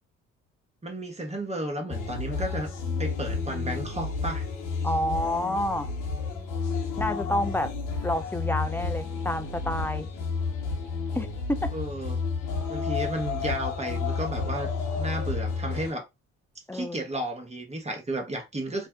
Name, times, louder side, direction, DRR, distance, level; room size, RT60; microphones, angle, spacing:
voice 1, 0.8-2.7 3.0-4.5 11.7-12.2 12.7-14.7 15.0-16.1 16.7-18.9, right 1 dB, 20° right, 1.1 m, -33 dB
sound 1, 1.9-15.9, left 4 dB, 65° left, 1.0 m, -31 dB
voice 2, 4.8-5.9 7.0-7.7 8.0-10.1 11.1-11.7 16.7-17.0, left 1 dB, 5° left, 0.5 m, -29 dB
2.6 x 2.2 x 3.5 m
hypercardioid pair, 60°, 34 cm